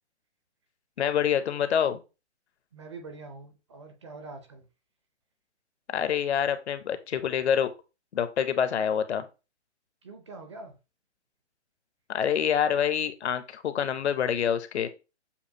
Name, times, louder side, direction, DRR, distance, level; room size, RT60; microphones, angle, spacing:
voice 1, 1.0-2.0 5.9-7.7 8.1-9.3 12.1-14.9, left 8 dB, 70° left, 11 dB, 0.7 m, -26 dB
voice 2, 2.7-4.7 10.0-10.7, right 3 dB, 25° right, 5 dB, 0.5 m, -44 dB
7.0 x 2.4 x 2.7 m, 0.30 s
hypercardioid pair, 155°, 35 cm